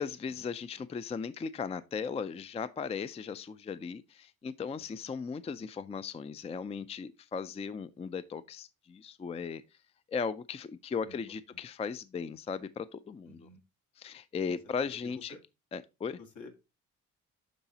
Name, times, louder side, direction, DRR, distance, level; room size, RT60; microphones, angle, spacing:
voice 1, 0.0-9.6 10.1-13.5 14.0-15.3 15.7-16.2, left 5 dB, 20° left, 0.4 m, -37 dB
voice 2, 13.2-13.6 14.4-14.6 14.8-15.4 16.2-16.5, left 3 dB, 70° left, 1.9 m, -50 dB
11.5 x 4.0 x 2.8 m
cardioid pair, 90°, 30 cm